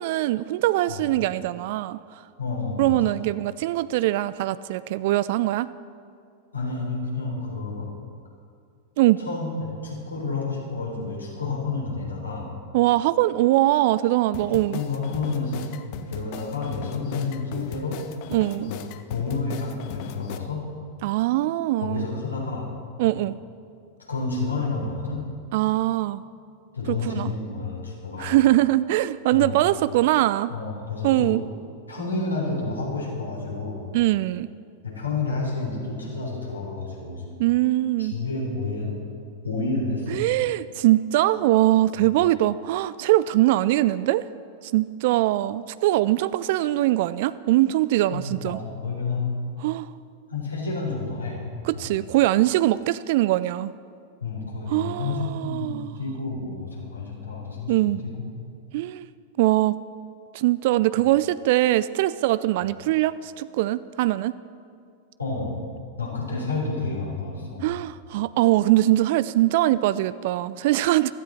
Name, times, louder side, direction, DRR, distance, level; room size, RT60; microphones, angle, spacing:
voice 1, 0.0-2.0 2.8-5.7 9.0-9.2 12.7-14.8 18.3-18.7 21.0-22.1 23.0-23.3 25.5-26.2 26.9-27.3 28.2-30.5 31.0-31.4 33.9-34.5 37.4-38.1 40.1-44.2 44.6-48.6 49.6-49.9 51.6-53.7 54.7-56.0 57.7-58.0 58.7-59.1 59.4-59.8 60.3-64.4 67.6-71.1, right 16 dB, 50° right, 16 dB, 0.3 m, -22 dB
voice 2, 2.4-3.2 6.5-7.9 9.2-12.5 14.5-15.6 16.1-18.0 18.6-18.8 19.1-20.7 21.8-22.7 24.1-25.3 26.7-28.4 29.3-29.6 30.5-31.3 31.9-33.8 34.8-37.2 38.0-39.1 39.4-40.3 48.1-49.4 50.3-51.5 51.7-51.9 54.2-58.3 65.2-65.6 66.0-67.7, left 3 dB, 80° left, -3 dB, 3.8 m, -30 dB
sound 1, 14.3-20.4, left 9 dB, 45° left, 0.7 m, -38 dB
16.0 x 13.0 x 4.3 m, 2.2 s
figure-of-eight pair, 90°, 0 cm